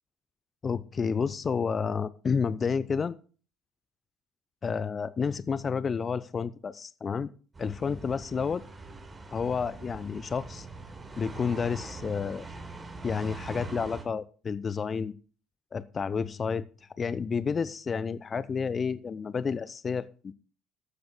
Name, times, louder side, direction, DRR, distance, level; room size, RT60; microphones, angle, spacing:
voice 1, 0.6-3.2 4.6-7.3 7.6-8.6 9.3-10.7 11.2-12.5 13.0-15.1 15.7-16.7 17.0-20.3, left 6 dB, 35° left, 17 dB, 0.6 m, -30 dB
sound 1, 7.5-14.0, right 3 dB, 25° right, 4.2 m, -43 dB
15.0 x 13.0 x 2.2 m, 0.39 s
figure-of-eight pair, 55°, 0 cm